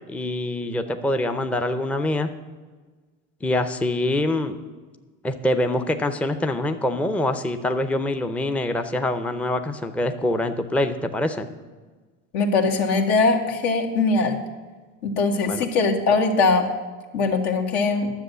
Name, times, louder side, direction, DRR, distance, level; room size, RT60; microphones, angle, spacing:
voice 1, 0.1-2.3 3.4-4.6 5.2-11.5 15.5-15.6, left 1 dB, 5° left, 8 dB, 0.6 m, -25 dB
voice 2, 12.3-14.4 15.0-16.7 17.1-18.1, left 3 dB, 70° left, 3 dB, 1.7 m, -21 dB
10.5 x 7.4 x 6.8 m, 1.4 s
supercardioid pair, 95°, 35 cm